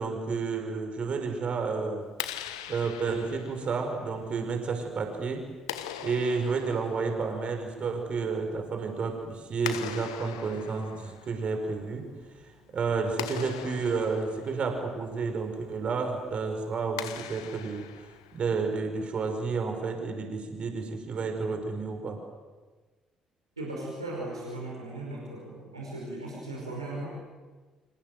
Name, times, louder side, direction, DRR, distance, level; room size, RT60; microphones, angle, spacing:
voice 1, 0.0-2.1 2.7-5.5 6.0-12.1 12.7-17.9 18.3-22.2, right 4 dB, 45° right, 4 dB, 5.1 m, -31 dB
Clapping, 2.0-18.8, left 11 dB, 75° left, 1.4 m, -42 dB
voice 2, 23.6-27.1, right 2 dB, 90° right, -3 dB, 5.2 m, -37 dB
29.0 x 26.5 x 7.8 m, 1.3 s
figure-of-eight pair, 45°, 3 cm